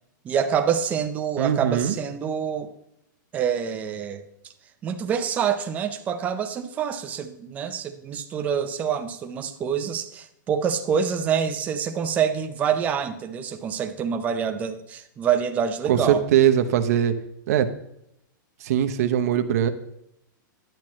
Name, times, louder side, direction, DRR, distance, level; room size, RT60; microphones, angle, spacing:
voice 1, 0.2-2.7 3.3-4.2 4.8-16.2, right 7 dB, 15° right, 6 dB, 0.6 m, -26 dB
voice 2, 1.4-1.9 15.9-17.1 17.5-17.7 18.6-19.7, right 10 dB, 50° right, 8 dB, 0.9 m, -21 dB
10.5 x 8.9 x 3.1 m, 0.78 s
supercardioid pair, 170°, 11 cm